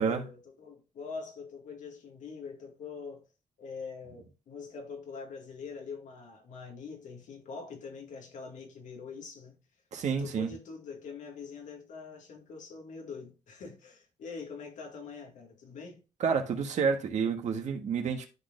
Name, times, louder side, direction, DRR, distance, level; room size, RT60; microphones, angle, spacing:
voice 1, 0.0-3.3 3.6-9.6 10.2-16.0, left 5 dB, 85° left, 2.1 m, -44 dB
voice 2, 9.9-10.5 16.2-18.3, right 6 dB, 70° right, 1.6 m, -29 dB
12.5 x 4.2 x 2.6 m
cardioid pair, 120°, 12 cm